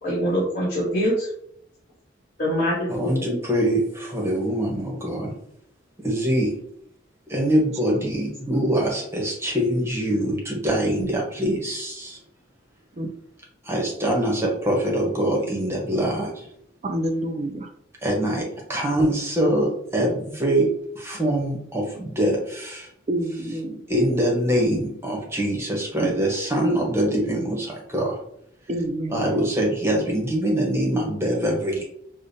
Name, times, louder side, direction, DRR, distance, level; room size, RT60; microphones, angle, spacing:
voice 1, 0.0-1.3 2.4-3.4, equal, 45° left, -7 dB, 1.2 m, -24 dB
voice 2, 2.9-5.4 6.0-6.6 7.3-12.2 13.6-16.5 18.0-22.9 23.9-28.2 29.1-31.8, right 1 dB, 15° right, -1 dB, 0.8 m, -24 dB
voice 3, 16.8-17.7 23.1-23.8 26.0-26.1 28.7-29.3, right 1 dB, 35° right, 6 dB, 0.4 m, -27 dB
4.9 x 2.1 x 2.7 m, 0.70 s
head